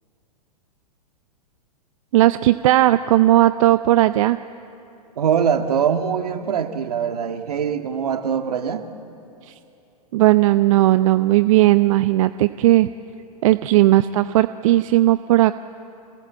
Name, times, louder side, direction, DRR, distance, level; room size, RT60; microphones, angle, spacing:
voice 1, 2.1-4.4 9.5-9.6 10.1-12.9 13.4-15.5, right 15 dB, 55° right, 12 dB, 0.6 m, -16 dB
voice 2, 5.2-8.9, right 7 dB, 75° right, 6 dB, 1.9 m, -22 dB
26.5 x 18.0 x 7.5 m, 2.8 s
hypercardioid pair, 110°, 20 cm